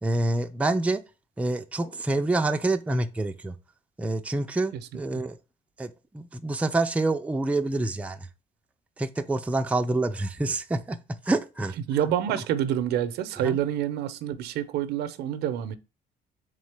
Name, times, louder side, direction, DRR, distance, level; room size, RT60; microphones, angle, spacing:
voice 1, 0.0-1.0 1.4-3.6 4.0-5.4 5.8-8.2 9.0-11.0 11.2-11.7 13.4-13.6, right 2 dB, 10° right, 0.4 m, -27 dB
voice 2, 11.9-15.8, right 10 dB, 80° right, 0.5 m, -27 dB
3.7 x 3.6 x 3.3 m
cardioid pair, 110°, 17 cm